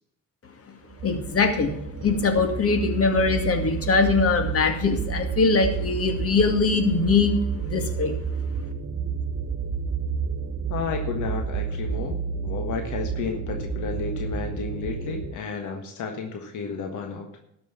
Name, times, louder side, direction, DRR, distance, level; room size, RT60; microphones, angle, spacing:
sound 1, 0.9-15.3, right 6 dB, 45° right, 1.4 m, -30 dB
voice 1, 1.0-7.3 7.6-8.1, left 4 dB, 50° left, 6 dB, 2.3 m, -22 dB
voice 2, 10.7-12.1 12.4-17.3, left 5 dB, 75° left, 4 dB, 1.6 m, -32 dB
13.0 x 6.1 x 7.2 m, 0.79 s
cardioid pair, 90°, 30 cm